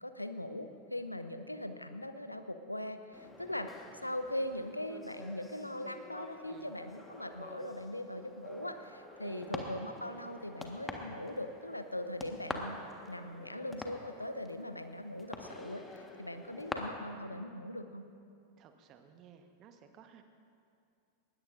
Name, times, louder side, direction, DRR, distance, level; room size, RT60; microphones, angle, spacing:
voice 1, 0.0-3.7 4.0-12.8 13.1-18.1, left 1 dB, 85° left, 9 dB, 0.8 m, -40 dB
sound 1, 3.1-16.7, left 2 dB, 10° left, 1.5 m, -47 dB
voice 2, 9.2-9.5 18.6-20.2, right 6 dB, 35° right, 7 dB, 1.2 m, -55 dB
20.5 x 19.0 x 2.6 m, 2.5 s
figure-of-eight pair, 90°, 0 cm